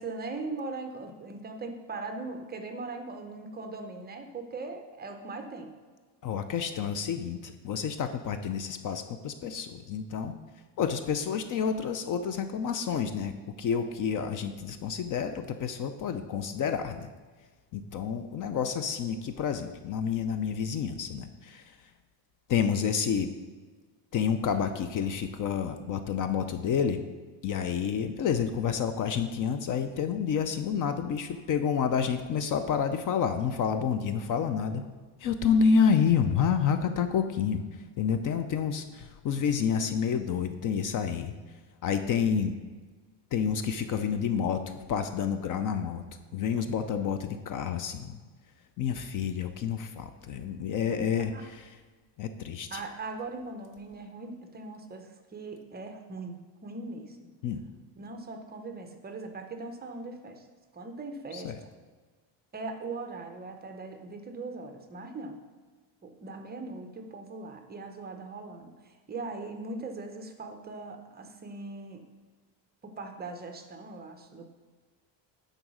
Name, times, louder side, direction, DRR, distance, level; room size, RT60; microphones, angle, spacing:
voice 1, 0.0-5.8 50.9-51.5 52.7-57.3 58.0-60.5 60.7-61.7 62.5-65.4 66.0-72.0 72.8-74.5, right 3 dB, 20° right, 5 dB, 0.7 m, -40 dB
voice 2, 6.2-10.3 10.8-17.1 17.7-21.6 22.5-23.3 24.1-27.0 27.4-34.8 35.2-37.6 38.0-41.3 41.8-42.5 43.3-44.6 44.9-46.0 46.3-48.2 48.8-51.7 52.2-52.8 57.4-57.6 61.3-61.6, left 7 dB, 45° left, 9 dB, 0.5 m, -29 dB
10.0 x 4.0 x 6.1 m, 1.4 s
cardioid pair, 155°, 45 cm